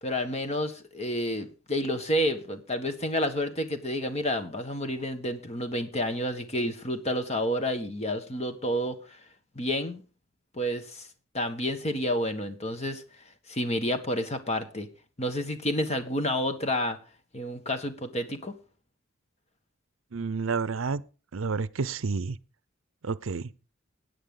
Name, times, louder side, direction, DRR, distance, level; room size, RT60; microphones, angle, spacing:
voice 1, 0.0-9.2 9.5-10.0 10.5-11.1 11.3-13.0 13.5-14.9 15.2-17.0 17.3-18.5, equal, 30° left, 1.5 m, -30 dB
voice 2, 20.1-21.0 21.3-22.4 23.0-23.5, right 4 dB, 75° right, 0.6 m, -30 dB
16.0 x 9.4 x 3.8 m
head